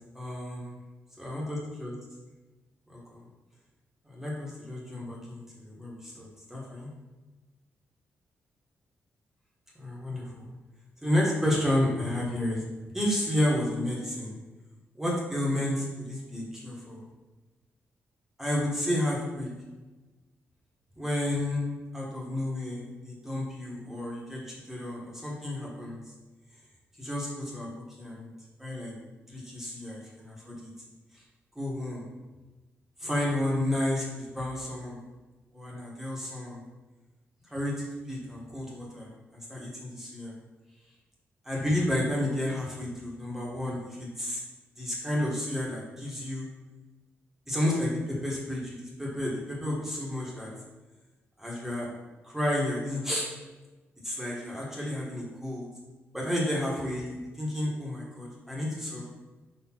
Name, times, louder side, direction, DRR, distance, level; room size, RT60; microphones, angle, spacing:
voice 1, 0.1-0.7 1.2-1.9 2.9-3.2 4.1-6.9 9.8-10.5 11.0-12.7 12.9-14.4 14.9-17.0 18.4-19.5 21.0-21.6 21.9-26.0 27.0-28.3 28.6-28.9 29.3-30.7 31.1-31.2 31.5-32.1 33.0-35.0 35.5-36.6 37.4-39.1 39.5-40.3 41.4-44.4 44.8-46.5 47.5-50.5 51.4-51.9 52.2-53.3 54.0-55.7 56.1-59.0, left 1 dB, 5° right, -4 dB, 1.4 m, -31 dB
4.9 x 4.3 x 4.4 m, 1.2 s
cardioid pair, 120°, 5 cm